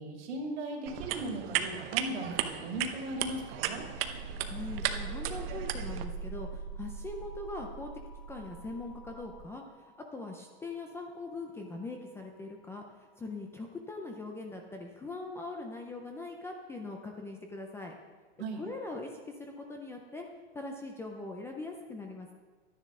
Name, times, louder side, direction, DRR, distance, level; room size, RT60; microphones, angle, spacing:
voice 1, 0.0-3.8 18.4-18.6, right 1 dB, 75° right, 1 dB, 2.6 m, -37 dB
sound 1, 0.9-6.0, right 11 dB, 55° right, 0.8 m, -35 dB
sound 2, 3.8-12.8, right 4 dB, 55° left, 3.5 m, -43 dB
voice 2, 4.5-7.9 8.3-9.6 10.1-17.9 18.6-20.3 20.5-22.3, left 3 dB, 10° left, 2 dB, 0.4 m, -41 dB
11.5 x 10.0 x 3.7 m, 1.4 s
supercardioid pair, 150°, 34 cm